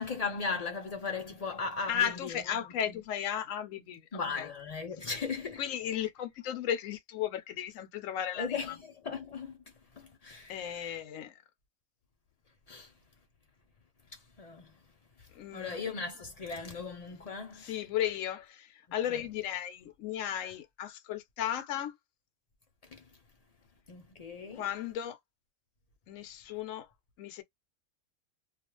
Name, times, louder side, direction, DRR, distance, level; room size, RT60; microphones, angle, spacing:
voice 1, 0.0-3.0 4.1-5.6 8.3-9.6 10.0-10.9 12.7-12.9 14.4-14.7 15.5-17.8 19.1-19.3 22.9-23.0 23.9-24.7, left 4 dB, 85° left, 0.3 m, -38 dB
voice 2, 1.9-4.5 5.6-8.5 10.5-11.4 15.3-15.8 17.6-21.9 24.6-25.2 26.1-26.9 27.2-27.4, left 10 dB, 70° left, 0.9 m, -35 dB
2.3 x 2.3 x 2.9 m
omnidirectional pair, 1.5 m